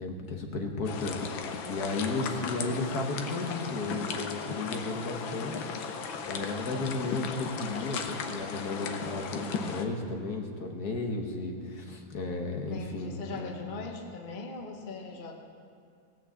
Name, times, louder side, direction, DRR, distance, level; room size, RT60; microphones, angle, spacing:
voice 1, 0.0-5.7 6.3-13.5, left 3 dB, 60° left, 2 dB, 1.5 m, -34 dB
sound 1, 0.8-9.8, left 5 dB, 85° left, 1.6 m, -36 dB
voice 2, 12.7-15.3, left 3 dB, 35° left, 1 dB, 0.9 m, -40 dB
18.0 x 6.2 x 7.0 m, 2.3 s
omnidirectional pair, 2.1 m